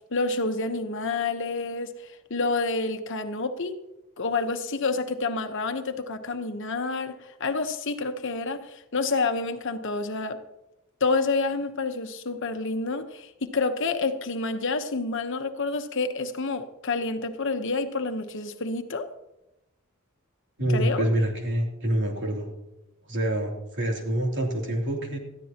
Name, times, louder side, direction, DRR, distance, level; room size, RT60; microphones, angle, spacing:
voice 1, 0.1-3.7 4.2-10.4 11.0-19.1 20.7-21.1, left 3 dB, 60° left, 8 dB, 1.1 m, -28 dB
voice 2, 20.6-22.5 23.1-25.2, right 1 dB, 60° right, 0 dB, 3.0 m, -26 dB
20.0 x 14.0 x 2.9 m, 0.94 s
head